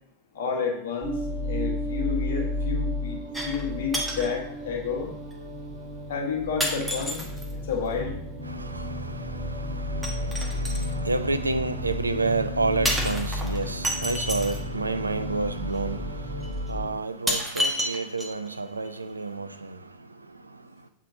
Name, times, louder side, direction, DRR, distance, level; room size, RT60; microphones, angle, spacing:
voice 1, 0.3-5.1 6.1-7.2 7.5-8.2, left 6 dB, 60° left, 1.5 m, -31 dB
sound 1, 1.0-16.9, left 1 dB, 25° right, 2.6 m, -32 dB
sound 2, 3.3-3.7 3.9-4.3 5.3-5.4 6.6-7.5 10.0-10.9 12.9-14.6 15.7-15.8 16.4-16.5 17.3-18.5 18.9-19.0, equal, 5° right, 1.1 m, -30 dB
voice 2, 8.5-19.8, right 3 dB, 80° right, 0.4 m, -30 dB
8.2 x 3.7 x 3.9 m
figure-of-eight pair, 90°, 0 cm